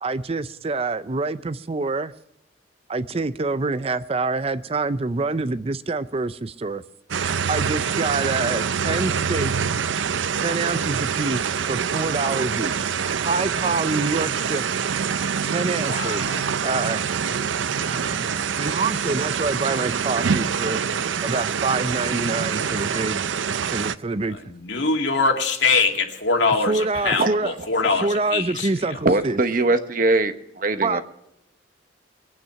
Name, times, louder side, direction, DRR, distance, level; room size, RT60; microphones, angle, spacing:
voice 1, 0.0-2.1 2.9-6.8 7.5-9.8 10.4-12.9 13.1-14.7 15.4-17.0 17.8-18.3 18.6-20.8 21.2-23.2 23.7-24.4 26.7-27.5 28.0-29.4 30.8-31.0, right 3 dB, 30° right, 0.5 m, -26 dB
sound 1, 7.1-24.0, right 7 dB, 90° right, 0.6 m, -25 dB
voice 2, 15.6-16.4 24.5-28.7, left 4 dB, 75° left, 2.3 m, -23 dB
voice 3, 29.0-31.0, right 2 dB, 45° right, 1.1 m, -21 dB
22.0 x 9.1 x 5.7 m
head